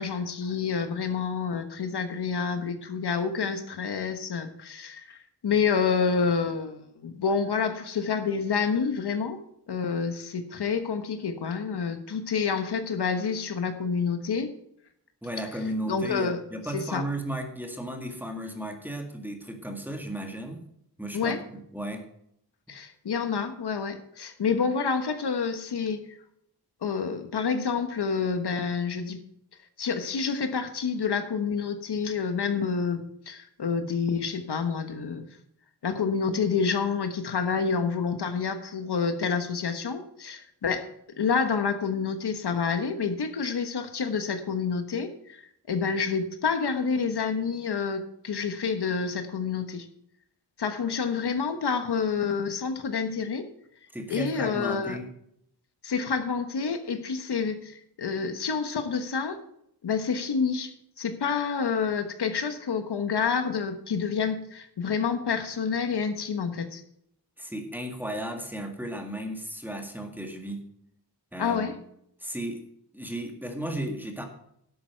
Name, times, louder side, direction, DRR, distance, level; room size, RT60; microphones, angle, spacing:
voice 1, 0.0-9.4 9.7-14.5 15.9-16.4 16.7-17.0 21.1-21.4 22.7-26.0 26.8-29.2 29.8-35.2 35.8-40.9 41.2-45.4 45.7-49.9 50.6-53.5 54.1-55.0 55.8-59.4 59.8-66.8 71.4-71.7, left 5 dB, 70° left, 8 dB, 1.3 m, -28 dB
voice 2, 15.2-20.6 21.0-22.0 53.9-55.1 67.4-70.6 71.3-71.7 72.2-72.6 72.9-74.2, right 1 dB, 5° right, 4 dB, 1.9 m, -34 dB
11.0 x 8.6 x 4.6 m, 0.73 s
wide cardioid pair, 125°, 41 cm